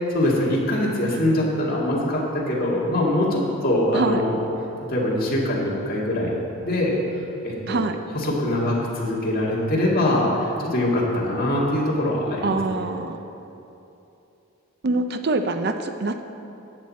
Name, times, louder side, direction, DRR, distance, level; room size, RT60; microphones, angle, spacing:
voice 1, 0.0-4.4 4.9-6.3 6.6-7.8 8.2-12.8, left 1 dB, 40° left, -4 dB, 2.0 m, -23 dB
voice 2, 7.7-8.0 12.4-13.2 14.8-16.2, right 3 dB, 45° right, 8 dB, 0.5 m, -24 dB
13.5 x 8.8 x 4.2 m, 2.9 s
head